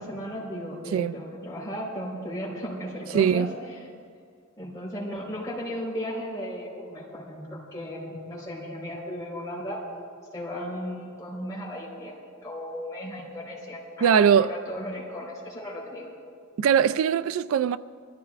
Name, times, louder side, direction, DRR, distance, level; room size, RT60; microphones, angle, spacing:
voice 1, 0.0-3.5 4.6-9.8 10.3-12.2 12.4-16.1, equal, 15° left, 4.1 m, -35 dB
voice 2, 3.1-3.5 14.0-14.5 16.6-17.8, right 7 dB, 80° right, 0.3 m, -21 dB
23.5 x 14.0 x 2.4 m
head